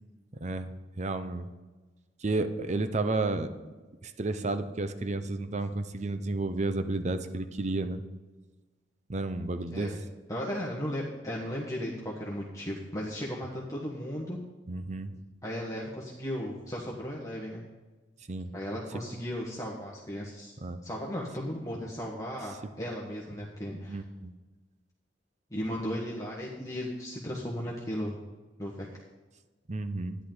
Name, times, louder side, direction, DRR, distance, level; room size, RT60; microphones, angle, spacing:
voice 1, 0.4-1.5 2.2-3.5 4.0-8.0 9.1-9.9 14.7-15.2 18.3-18.5 20.6-20.8 23.4-23.5 23.9-24.3 29.7-30.2, right 2 dB, 40° right, 10 dB, 0.7 m, -32 dB
voice 2, 10.3-14.4 15.4-17.6 18.5-20.5 20.8-24.0 25.5-28.2 28.6-28.9, equal, 20° left, -4 dB, 1.3 m, -36 dB
11.5 x 10.0 x 3.9 m, 1.2 s
head